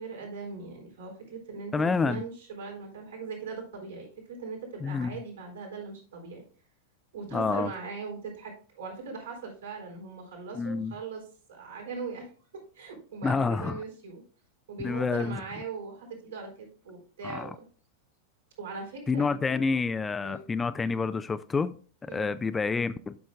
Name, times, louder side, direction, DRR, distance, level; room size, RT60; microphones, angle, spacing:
voice 1, 0.0-6.4 7.1-11.2 11.5-12.3 12.7-14.2 14.7-17.6 18.6-19.3 20.2-20.4 22.1-22.3, right 4 dB, 65° right, 3.7 m, -40 dB
voice 2, 1.7-2.2 4.8-5.1 7.3-7.7 10.6-10.9 13.2-13.8 14.8-15.4 17.2-17.5 19.1-21.8 22.0-23.2, left 4 dB, 15° left, 0.3 m, -28 dB
11.5 x 6.2 x 2.3 m
figure-of-eight pair, 90°, 0 cm